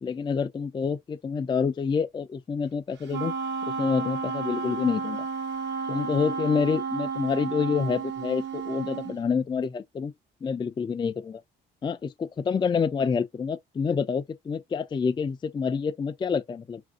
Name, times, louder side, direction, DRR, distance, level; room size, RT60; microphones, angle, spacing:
voice 1, 0.0-3.3 3.8-5.3 5.9-10.1 10.4-11.4 11.8-16.8, left 6 dB, 25° left, 0.3 m, -27 dB
Wind instrument woodwind instrument, 3.1-9.2, right 5 dB, 65° right, 1.1 m, -32 dB
3.4 x 2.5 x 2.3 m
cardioid pair, 90°, 20 cm